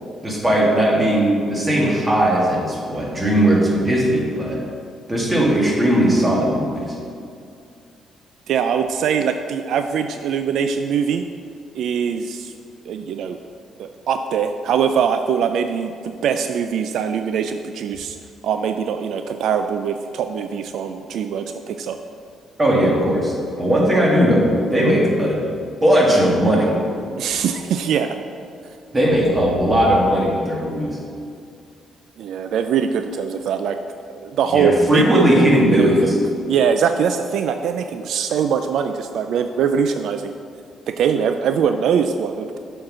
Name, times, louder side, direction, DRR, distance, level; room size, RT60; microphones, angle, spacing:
voice 1, 0.2-4.6 5.1-6.9 22.6-25.4 25.8-26.7 28.9-31.0 34.5-36.2, equal, 20° right, -3 dB, 2.0 m, -18 dB
voice 2, 8.5-11.2 11.7-12.5 12.9-13.4 13.8-18.2 18.4-22.0 27.2-28.2 32.2-33.8 34.1-36.1 36.5-40.3 40.9-42.6, right 7 dB, 75° right, 8 dB, 0.3 m, -22 dB
7.3 x 4.5 x 6.2 m, 2.4 s
cardioid pair, 90°, 0 cm